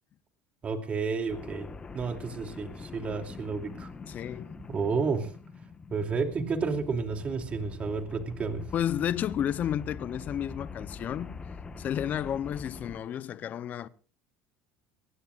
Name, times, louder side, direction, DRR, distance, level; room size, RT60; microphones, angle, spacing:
voice 1, 0.6-1.7 1.9-3.9 4.7-5.3 5.9-8.6, right 4 dB, 35° right, 2.8 m, -31 dB
sound 1, 1.3-13.0, left 4 dB, 25° left, 1.4 m, -44 dB
voice 2, 4.1-4.5 8.7-11.4 11.8-13.9, left 10 dB, 45° left, 0.7 m, -31 dB
22.5 x 17.5 x 2.5 m
supercardioid pair, 105°, 4 cm